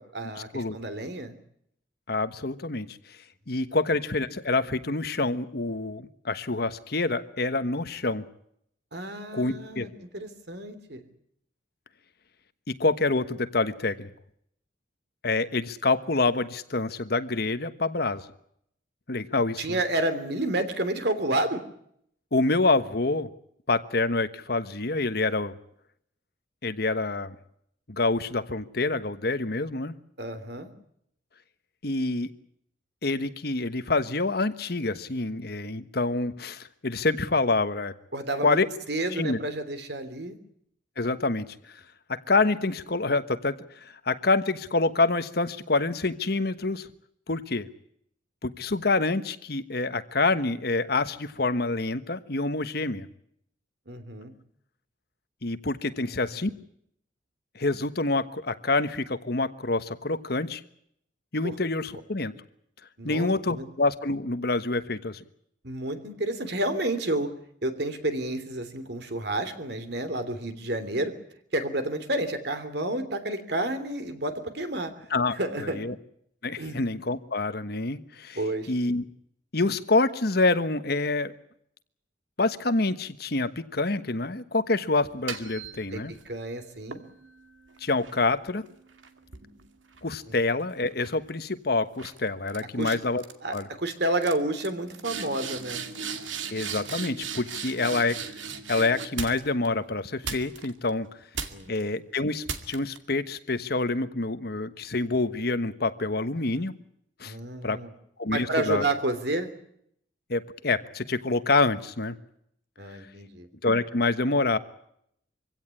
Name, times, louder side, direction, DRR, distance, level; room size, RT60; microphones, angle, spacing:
voice 1, 0.0-1.3 8.9-11.0 19.6-21.6 30.2-30.7 38.1-38.6 38.9-40.4 53.9-54.3 61.4-61.5 63.0-63.7 65.6-67.3 67.6-71.1 71.5-74.9 75.3-75.8 76.6-76.8 78.3-78.7 85.9-87.0 92.8-92.9 93.4-95.8 101.5-101.7 107.2-107.9 108.3-109.5 112.8-113.5, right 1 dB, 60° right, 10 dB, 3.1 m, -30 dB
voice 2, 2.1-3.0 3.5-8.2 9.3-9.9 12.7-14.1 15.2-18.3 19.1-19.8 22.3-23.3 23.7-25.6 26.6-27.3 27.9-29.9 31.8-32.3 33.0-37.9 38.4-38.7 39.1-39.4 41.0-41.5 42.1-46.9 47.3-47.7 48.4-53.1 55.4-56.5 57.5-60.6 61.3-62.3 63.0-65.2 75.1-75.9 76.4-78.4 78.7-79.0 79.5-81.3 82.4-86.1 87.8-88.6 90.0-93.2 93.5-93.7 96.5-98.2 98.7-101.1 101.7-106.7 107.2-107.3 107.6-107.8 108.2-108.8 110.3-112.1 113.6-114.6, left 3 dB, 55° left, 11 dB, 1.3 m, -27 dB
sound 1, 85.1-86.3 86.9-90.5 90.9-91.3 92.0-92.2 92.5-92.9 93.2-93.6 93.9-94.0 94.2-99.7 100.2-100.9 101.3-101.8 102.5-103.0, right 6 dB, 90° right, 2.3 m, -38 dB
24.5 x 16.5 x 9.8 m, 0.71 s
head